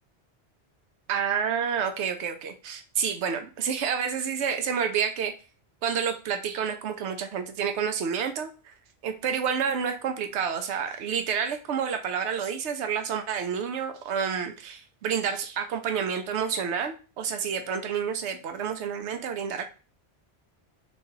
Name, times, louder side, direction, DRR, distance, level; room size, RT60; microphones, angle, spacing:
voice 1, 1.1-5.3 5.8-8.7 9.0-19.7, right 7 dB, 85° right, 7 dB, 0.9 m, -29 dB
3.5 x 3.2 x 2.8 m, 0.35 s
omnidirectional pair, 1.1 m